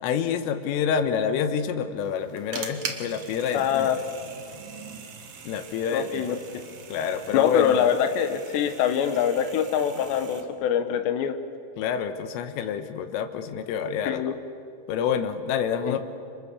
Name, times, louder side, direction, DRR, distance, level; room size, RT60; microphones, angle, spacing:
voice 1, 0.0-3.9 5.5-6.2 6.9-7.8 11.8-14.2 14.9-16.0, left 7 dB, 85° left, 9 dB, 3.9 m, -27 dB
sound 1, 2.0-10.4, right 5 dB, 55° right, 1.8 m, -41 dB
voice 2, 3.5-4.0 5.9-6.6 7.3-11.4 14.1-14.3 15.9-16.0, left 8 dB, 70° left, 8 dB, 3.2 m, -24 dB
30.0 x 26.0 x 7.1 m, 2.5 s
omnidirectional pair, 5.7 m